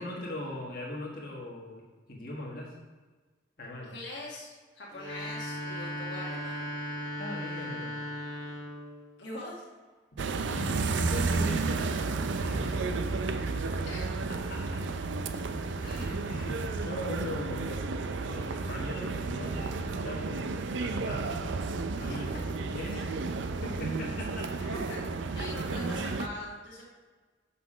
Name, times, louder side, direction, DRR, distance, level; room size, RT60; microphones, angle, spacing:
voice 1, 0.0-2.7 3.6-3.9 7.2-8.0 10.5-13.3 14.3-14.9 15.8-17.6 18.2-21.5 22.0-23.1 23.6-24.5 25.3-25.7, left 1 dB, 50° left, -4 dB, 1.5 m, -40 dB
voice 2, 3.8-6.6 9.2-9.6 13.9-14.0 17.7-18.1 22.1-22.4 24.6-25.0 25.3-26.8, left 1 dB, 65° left, -4 dB, 1.4 m, -42 dB
sound 1, 4.9-8.9, equal, 20° right, 2.2 m, -37 dB
sound 2, 10.2-26.3, right 3 dB, 75° right, 0.5 m, -32 dB
5.9 x 5.8 x 5.0 m, 1.3 s
head